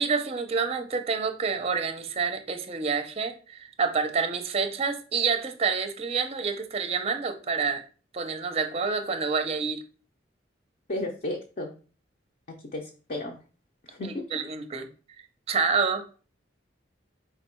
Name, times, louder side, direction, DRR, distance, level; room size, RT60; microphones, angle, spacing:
voice 1, 0.0-7.8 8.1-9.8 14.0-14.9 15.5-16.0, right 5 dB, 35° right, 8 dB, 0.5 m, -28 dB
voice 2, 10.9-11.7 12.7-13.3 13.8-14.2, left 1 dB, 45° left, 0 dB, 0.6 m, -33 dB
4.5 x 2.3 x 4.3 m, 0.37 s
head